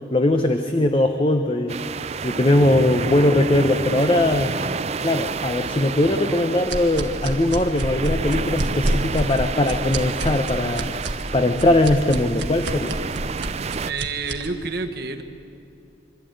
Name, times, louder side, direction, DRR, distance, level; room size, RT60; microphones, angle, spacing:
voice 1, 0.1-1.8 2.2-4.5 5.0-10.9 11.3-13.0, left 1 dB, 30° left, 6 dB, 0.8 m, -20 dB
sound 1, 1.7-13.9, right 5 dB, 35° right, 0.4 m, -30 dB
sound 2, 6.7-14.5, right 1 dB, 75° right, 1.6 m, -28 dB
voice 2, 13.8-15.2, right 4 dB, 55° right, 5 dB, 1.4 m, -28 dB
24.5 x 13.5 x 9.3 m, 2.9 s
head